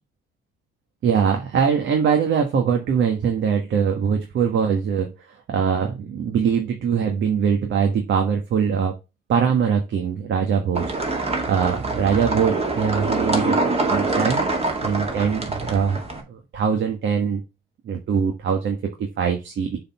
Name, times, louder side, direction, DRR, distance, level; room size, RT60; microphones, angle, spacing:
voice 1, 1.0-5.1 5.5-8.9 9.3-10.8 11.4-14.4 14.8-16.0 16.3-17.4 17.8-18.8 19.2-19.8, right 7 dB, 70° right, 3 dB, 1.5 m, -22 dB
sound 1, 10.7-16.2, right 2 dB, 30° right, 2.4 m, -24 dB
6.6 x 4.2 x 5.7 m, 0.27 s
cardioid pair, 90°, 20 cm